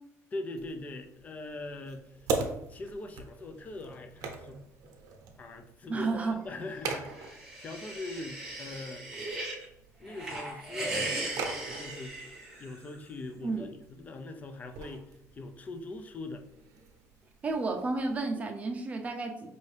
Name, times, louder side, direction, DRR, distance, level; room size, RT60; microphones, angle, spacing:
voice 1, 0.3-2.3 2.7-4.7 5.4-9.2 10.0-12.2 12.6-16.5, left 2 dB, 25° left, 7 dB, 0.4 m, -42 dB
sound 1, 0.6-18.2, right 4 dB, 75° right, 0.7 m, -42 dB
voice 2, 5.9-6.4 13.4-13.7 17.4-19.6, right 3 dB, 25° right, 3 dB, 0.5 m, -32 dB
sound 2, 7.0-9.6 10.0-12.9, right 2 dB, 5° right, 0.9 m, -38 dB
5.3 x 2.7 x 3.2 m, 0.80 s
cardioid pair, 160°, 6 cm